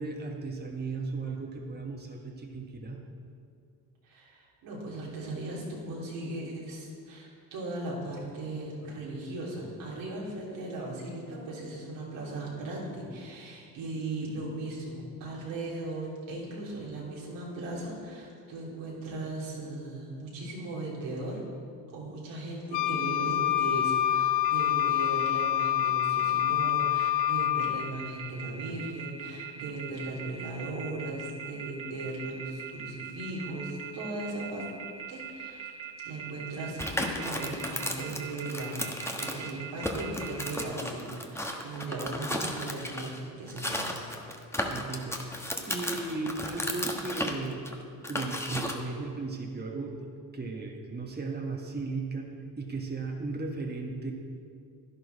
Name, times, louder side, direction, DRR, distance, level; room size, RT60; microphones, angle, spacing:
voice 1, 0.0-3.0 44.7-47.6 48.1-50.1 50.3-54.1, right 3 dB, 20° right, 1 dB, 1.4 m, -36 dB
voice 2, 4.0-21.4 21.9-34.7 35.1-35.7 36.0-44.1, right 2 dB, 85° right, -5 dB, 3.3 m, -38 dB
Wind instrument woodwind instrument, 22.7-27.9, left 12 dB, 75° left, 0.9 m, -26 dB
sound 1, 24.4-40.6, right 9 dB, 50° right, 1.1 m, -41 dB
sound 2, 36.8-39.5 39.8-43.2 43.5-48.8, left 1 dB, 5° left, 1.3 m, -34 dB
11.0 x 10.5 x 4.1 m, 2.4 s
supercardioid pair, 75°, 43 cm